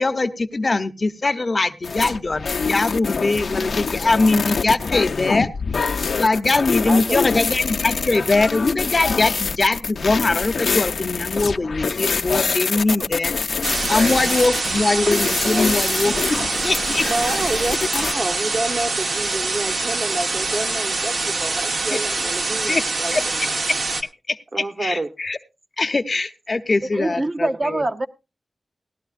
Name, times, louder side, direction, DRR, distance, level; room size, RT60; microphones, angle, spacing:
voice 1, 0.0-5.5 6.1-13.3 13.9-16.4 16.6-17.1 21.9-22.0 22.7-22.8 23.1-23.8 24.3-24.4 24.8-25.4 25.8-27.8, left 3 dB, 45° left, 0.7 m, -22 dB
sound 1, 1.8-18.1, left 5 dB, 85° left, 0.5 m, -25 dB
voice 2, 6.8-7.4 13.0-13.1 15.5-15.7 17.0-23.5 24.5-25.1, right 2 dB, 50° right, 1.1 m, -28 dB
sound 2, 13.6-24.0, right 3 dB, 85° right, 1.1 m, -24 dB
voice 3, 26.9-28.1, right 2 dB, 35° right, 0.7 m, -24 dB
18.0 x 12.0 x 2.5 m
wide cardioid pair, 95°, 0 cm